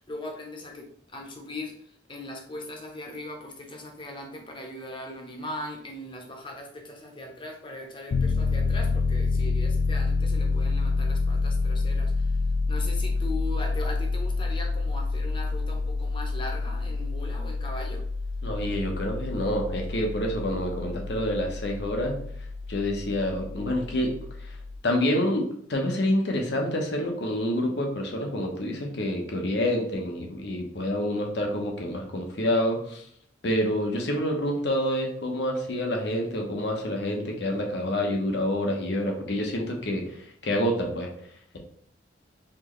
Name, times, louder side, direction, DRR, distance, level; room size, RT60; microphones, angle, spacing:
voice 1, 0.1-12.4 12.7-18.0, left 1 dB, 30° left, 2 dB, 0.8 m, -39 dB
Piano, 8.1-24.8, left 3 dB, 55° left, 0.3 m, -28 dB
voice 2, 18.4-22.2 22.7-24.1 24.4-24.5 24.8-33.0 33.4-41.1, left 1 dB, 70° left, 1 dB, 0.9 m, -27 dB
4.4 x 3.1 x 3.1 m, 0.64 s
head